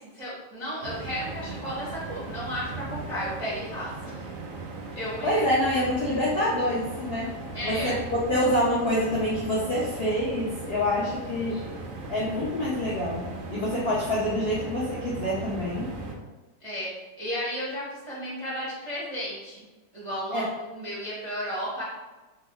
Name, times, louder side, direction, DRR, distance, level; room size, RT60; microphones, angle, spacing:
voice 1, 0.1-4.3 4.9-5.4 7.5-8.0 11.4-11.8 16.6-16.9 17.2-19.7 19.9-21.8, equal, 40° right, -9 dB, 0.4 m, -34 dB
sound 1, 0.8-16.1, right 3 dB, 75° right, 0.7 m, -38 dB
voice 2, 5.2-7.3 7.6-7.9 8.3-11.6 12.1-15.9 20.3-20.5, left 1 dB, 75° left, -7 dB, 0.5 m, -26 dB
3.3 x 2.0 x 3.5 m, 1.2 s
omnidirectional pair, 1.9 m